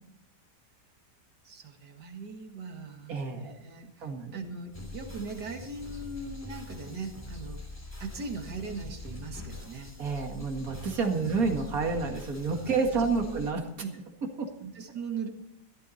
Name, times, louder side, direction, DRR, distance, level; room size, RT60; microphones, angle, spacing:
voice 1, 1.4-7.6 8.0-9.9 11.1-11.3 12.9-13.4 13.8-14.0 14.6-15.3, right 4 dB, 75° right, 4 dB, 2.4 m, -39 dB
voice 2, 3.1-3.5 4.0-4.4 10.0-13.6 14.2-14.5, right 4 dB, 55° right, 4 dB, 2.3 m, -29 dB
sound 1, 4.7-13.5, left 2 dB, 10° left, 2.7 m, -43 dB
15.5 x 12.5 x 4.2 m, 0.87 s
omnidirectional pair, 1.8 m